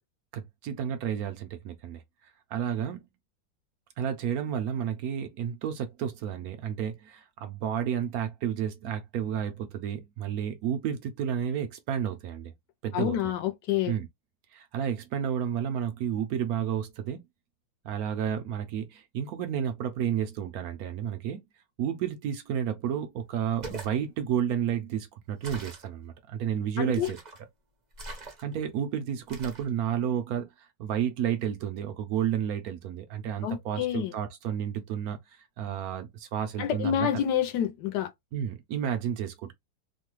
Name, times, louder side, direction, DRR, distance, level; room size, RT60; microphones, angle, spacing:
voice 1, 0.3-2.0 2.5-3.0 4.0-12.5 12.8-13.3 13.9-14.1 14.5-17.2 17.8-21.4 21.8-27.2 28.2-37.2 38.3-39.5, right 9 dB, 70° right, 0.9 m, -31 dB
voice 2, 12.9-13.9 26.8-27.1 33.4-34.1 36.6-38.1, left 10 dB, 75° left, 1.2 m, -28 dB
sound 1, 23.5-24.0 25.4-25.9 26.9-27.4 27.9-28.7 29.3-29.7, right 3 dB, 45° right, 0.5 m, -42 dB
3.2 x 2.2 x 3.0 m
omnidirectional pair, 2.0 m